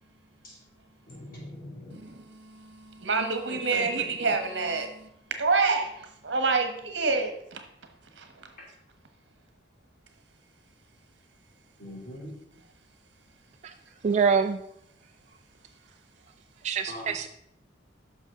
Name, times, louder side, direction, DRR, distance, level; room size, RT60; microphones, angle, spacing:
voice 1, 1.1-2.0 3.5-4.1 11.8-12.3 16.9-17.2, left 1 dB, 45° left, -2 dB, 2.8 m, -42 dB
voice 2, 3.0-4.9 5.4-5.9 6.2-7.6, right 4 dB, 65° right, 6 dB, 1.3 m, -26 dB
voice 3, 14.0-14.6 16.6-17.3, right 5 dB, 35° right, 6 dB, 0.3 m, -24 dB
9.4 x 6.4 x 3.7 m, 0.73 s
head